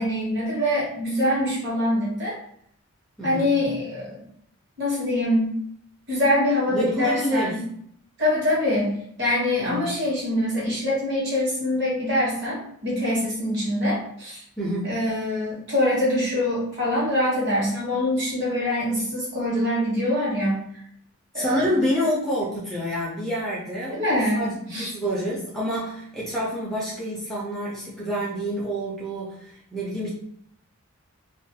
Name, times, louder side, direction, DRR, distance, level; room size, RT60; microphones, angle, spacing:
voice 1, 0.0-2.3 3.2-4.2 4.8-5.6 6.1-7.7 8.2-14.4 14.8-20.6 21.3-21.6 23.9-24.4 24.7-24.9, left 1 dB, 50° right, -5 dB, 1.0 m, -24 dB
voice 2, 3.2-3.6 6.7-7.7 9.6-9.9 14.6-15.0 21.3-24.0 24.4-30.1, equal, ahead, -6 dB, 0.4 m, -28 dB
2.4 x 2.2 x 2.7 m, 0.68 s
head